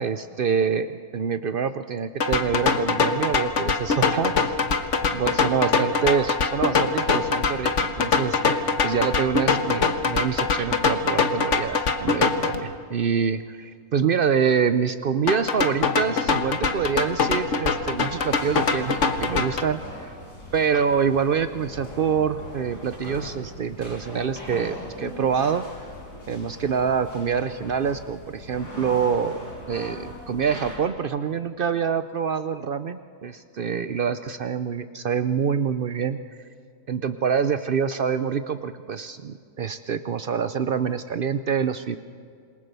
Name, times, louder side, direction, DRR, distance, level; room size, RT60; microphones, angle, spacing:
voice 1, 0.0-4.5 5.0-20.1 20.5-25.6 26.3-29.4 29.7-36.2 36.9-42.0, right 6 dB, 90° right, 11 dB, 0.4 m, -26 dB
sound 1, 2.2-12.6 15.3-19.6, left 4 dB, 50° left, 1.4 m, -23 dB
sound 2, 17.9-30.7, equal, 70° left, 6.6 m, -40 dB
27.5 x 21.5 x 6.8 m, 2.3 s
omnidirectional pair, 1.8 m